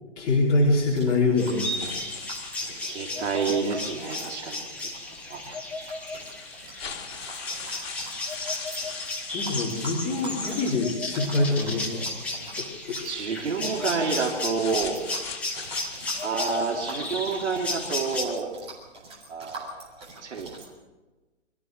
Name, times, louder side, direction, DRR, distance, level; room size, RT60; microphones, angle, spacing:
voice 1, 0.2-1.9 9.3-12.1 13.0-13.1, left 2 dB, 20° left, -5 dB, 3.4 m, -24 dB
sound 1, 0.9-20.7, right 2 dB, 15° right, 4.0 m, -45 dB
sound 2, 1.4-18.3, left 2 dB, 5° left, 1.6 m, -34 dB
sound 3, 1.6-4.8 5.6-5.7 6.2-12.0 12.9-18.1, left 6 dB, 55° left, 3.7 m, -42 dB
voice 2, 2.8-4.9 5.3-5.4 7.8-8.1 8.4-8.5 13.0-15.0 16.2-18.5 19.3-20.5, right 5 dB, 65° right, 1 dB, 3.6 m, -29 dB
25.0 x 14.0 x 7.7 m, 1.2 s
hypercardioid pair, 160°, 36 cm